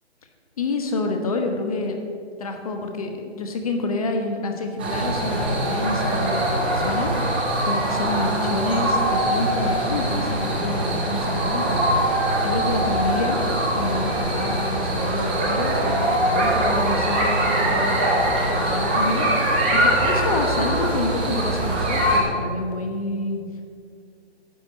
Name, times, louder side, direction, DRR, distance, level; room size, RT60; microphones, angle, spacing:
voice 1, 0.6-2.0 2.4-11.8 12.4-13.4 13.8-23.4, left 2 dB, 35° left, 4 dB, 1.1 m, -28 dB
sound 1, 4.8-22.2, right 1 dB, 10° right, 0.6 m, -22 dB
10.5 x 5.2 x 7.6 m, 2.2 s
figure-of-eight pair, 155°, 34 cm